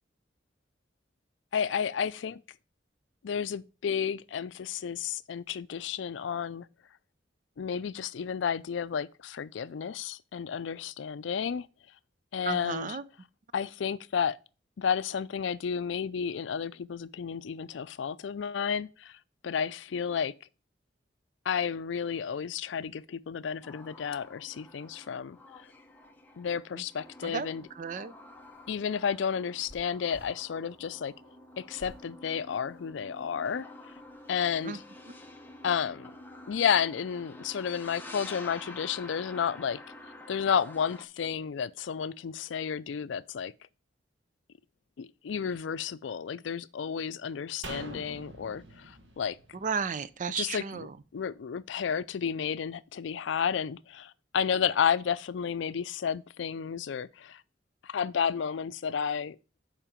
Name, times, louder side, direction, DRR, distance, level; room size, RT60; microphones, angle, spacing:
voice 1, 1.5-2.4 3.2-6.7 7.6-11.7 12.3-13.0 13.5-14.4 14.8-19.2 19.4-20.3 21.5-25.4 26.4-27.7 28.7-31.1 31.6-33.7 34.3-34.8 35.6-36.1 36.5-39.8 40.3-43.5 45.0-49.4 50.4-50.9 51.1-57.4 57.8-59.4, left 7 dB, 75° left, 0.4 m, -32 dB
voice 2, 12.5-13.0 26.7-26.8 27.2-27.5 27.8-28.1 34.6-34.8 35.1-35.2 49.6-50.9, right 6 dB, 45° right, 0.5 m, -33 dB
sound 1, 23.6-41.1, left 2 dB, 10° left, 0.9 m, -49 dB
sound 2, 28.4-30.4 31.8-32.0 32.7-33.3, left 1 dB, 10° right, 1.5 m, -52 dB
sound 3, 47.6-51.0 51.3-51.4, right 2 dB, 75° right, 1.2 m, -45 dB
7.3 x 5.0 x 5.0 m
head